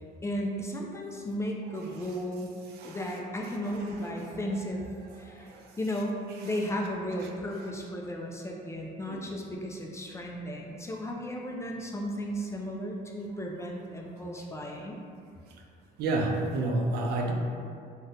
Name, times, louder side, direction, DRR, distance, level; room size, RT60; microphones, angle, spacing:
voice 1, 0.2-2.5 2.8-4.8 5.2-5.5 5.8-6.1 6.4-15.0, equal, 15° left, -1 dB, 0.3 m, -34 dB
voice 2, 16.0-17.3, right 2 dB, 70° right, 0 dB, 0.5 m, -29 dB
2.7 x 2.2 x 3.6 m, 2.3 s
cardioid pair, 110°, 17 cm